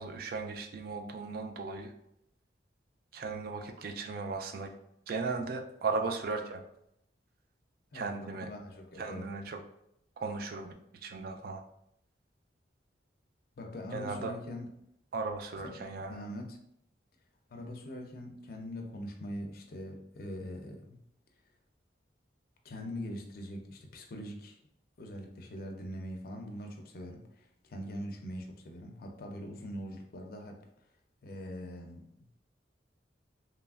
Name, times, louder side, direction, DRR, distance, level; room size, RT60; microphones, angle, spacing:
voice 1, 0.0-1.9 3.1-4.7 5.1-6.6 7.9-8.5 9.0-9.6 10.2-11.6 13.9-14.3 15.1-16.2, right 4 dB, 55° right, 5 dB, 0.3 m, -36 dB
voice 2, 7.9-9.3 13.6-14.7 15.6-16.6 17.5-21.0 22.6-24.6 25.0-30.6 31.2-32.1, equal, 55° left, 3 dB, 0.5 m, -42 dB
3.0 x 2.4 x 2.3 m, 0.78 s
head